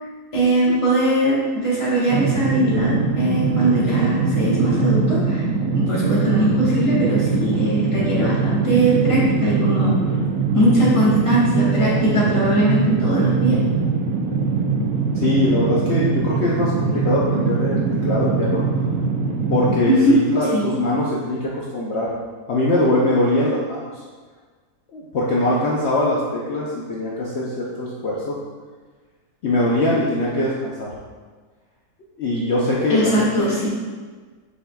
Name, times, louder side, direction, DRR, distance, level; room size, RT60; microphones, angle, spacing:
voice 1, 0.3-5.4 5.7-10.0 10.5-13.6 19.9-20.2 20.5-20.6 32.9-33.7, right 1 dB, 20° left, -9 dB, 1.3 m, -20 dB
sound 1, 2.1-19.8, right 4 dB, 70° right, 0.9 m, -22 dB
voice 2, 15.1-18.6 19.5-22.1 22.5-23.9 24.9-28.4 29.4-30.9 32.2-33.1 33.4-33.5, left 1 dB, 60° left, -5 dB, 0.7 m, -22 dB
6.2 x 3.6 x 2.3 m, 1.4 s
omnidirectional pair, 1.7 m